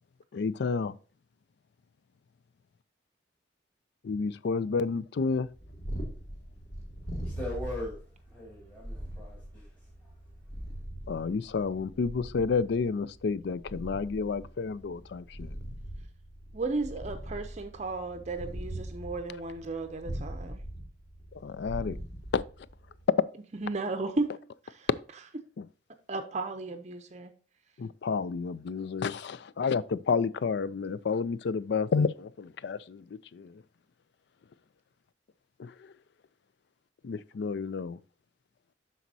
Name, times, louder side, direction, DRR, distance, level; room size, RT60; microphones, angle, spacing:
voice 1, 0.3-0.9 4.0-5.5 11.1-15.5 21.4-22.0 22.3-22.4 27.8-33.0 33.3-33.5 35.6-35.7 37.0-38.0, left 5 dB, 65° left, 0.4 m, -30 dB
Purr, 5.4-23.1, right 1 dB, 35° left, 2.3 m, -41 dB
voice 2, 7.2-10.3, left 1 dB, 10° left, 2.3 m, -41 dB
voice 3, 16.5-20.6 23.5-24.3 24.6-24.9 26.1-27.3, right 3 dB, 40° right, 0.6 m, -34 dB
12.0 x 4.2 x 2.7 m
head